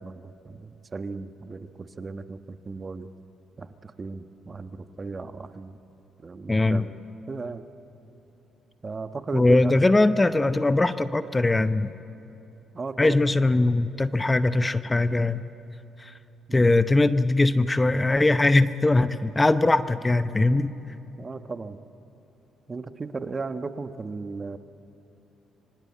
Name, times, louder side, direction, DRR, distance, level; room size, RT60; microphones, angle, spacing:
voice 1, 0.0-3.1 3.6-5.8 6.2-6.9 7.3-7.7 8.8-9.7 12.7-13.2 16.5-16.9 21.2-21.8 22.7-24.6, right 4 dB, 35° right, 9 dB, 1.2 m, -36 dB
voice 2, 6.5-6.8 9.3-11.9 13.0-15.4 16.0-16.1 16.5-20.7, left 2 dB, 20° left, 12 dB, 0.8 m, -21 dB
25.5 x 23.5 x 8.6 m, 3.0 s
supercardioid pair, 60°, 0 cm